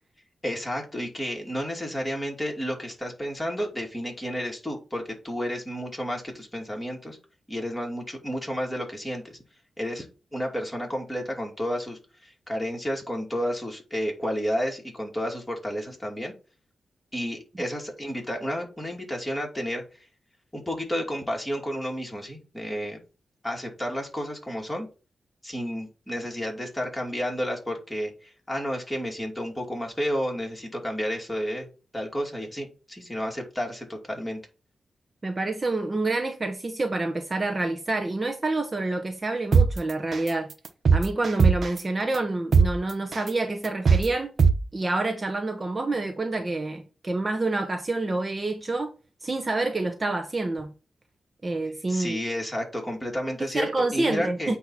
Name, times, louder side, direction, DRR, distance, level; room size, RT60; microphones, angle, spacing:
voice 1, 0.4-7.2 7.5-9.4 9.8-10.1 10.3-16.3 17.1-20.1 20.5-23.0 23.4-24.9 25.4-31.7 31.9-34.4 51.9-54.6, equal, 10° left, 2.8 m, -31 dB
voice 2, 35.2-40.5 40.9-44.3 44.7-48.9 49.2-50.7 51.4-52.2 53.5-54.6, right 2 dB, 30° right, 0.9 m, -27 dB
sound 1, 39.5-39.7 40.1-40.3 40.6-41.8 42.1-42.2 42.5-42.7 43.1-43.3 43.6-44.0 44.4-44.5, right 5 dB, 60° right, 0.8 m, -17 dB
8.4 x 2.9 x 5.7 m
cardioid pair, 80°, 0 cm